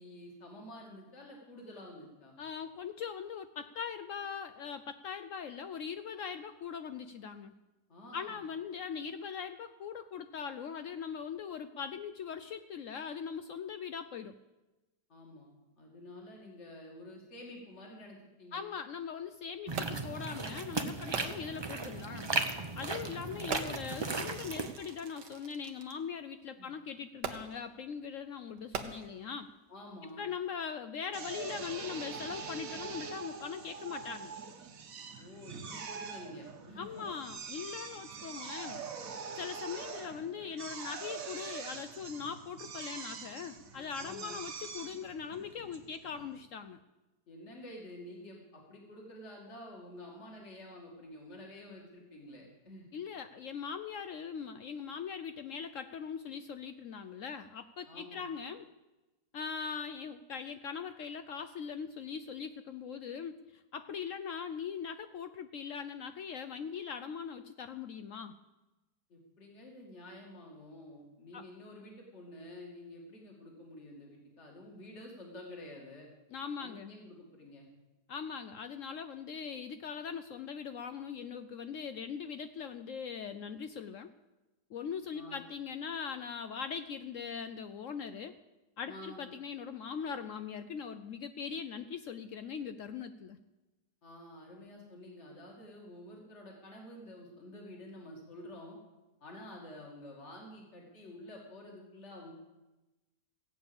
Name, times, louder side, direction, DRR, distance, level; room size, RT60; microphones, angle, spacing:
voice 1, 0.0-2.4 7.9-8.4 15.1-15.5 15.8-18.6 23.2-23.7 26.6-26.7 29.7-30.2 35.2-37.1 43.8-44.4 47.3-52.9 57.8-58.3 69.1-76.1 76.6-77.7 85.1-85.4 88.9-89.3 94.0-98.8 99.2-102.3, left 1 dB, 40° left, -1 dB, 2.7 m, -49 dB
voice 2, 2.4-7.5 8.1-14.3 18.5-22.3 22.7-29.5 30.2-34.3 36.8-38.8 39.4-46.8 52.9-58.7 59.3-68.4 71.3-71.4 76.3-76.9 78.1-84.1 84.7-88.3 88.8-93.4, left 6 dB, 65° left, 10 dB, 0.8 m, -41 dB
sound 1, 19.7-24.7, right 3 dB, 30° right, 0.4 m, -36 dB
Fireworks, 19.8-20.2 21.1-21.6 22.5-22.7 23.5-25.9 27.2-27.7 28.6-29.4 30.1-30.2, right 7 dB, 90° right, 1.7 m, -42 dB
Drill, 31.1-46.4, right 5 dB, 55° right, 1.5 m, -44 dB
15.5 x 8.8 x 7.0 m, 1.1 s
omnidirectional pair, 1.8 m